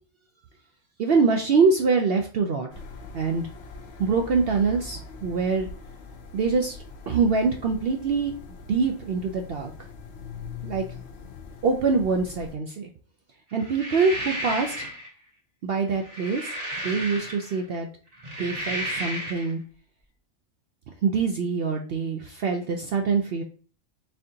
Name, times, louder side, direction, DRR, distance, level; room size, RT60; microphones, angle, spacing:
voice 1, 1.0-2.7 3.1-3.4 4.0-5.7 6.3-6.8 7.1-8.3 8.7-9.7 10.6-11.0 11.6-12.9 13.5-14.9 15.6-16.5 16.8-17.9 18.4-19.6 21.0-23.4, right 4 dB, 65° right, 3 dB, 0.6 m, -24 dB
sound 1, 2.7-12.5, left 4 dB, 60° left, 0.8 m, -42 dB
sound 2, 13.6-15.1 15.9-17.6 18.1-19.5, equal, 30° right, 0.9 m, -33 dB
4.3 x 3.7 x 2.7 m, 0.39 s
omnidirectional pair, 1.4 m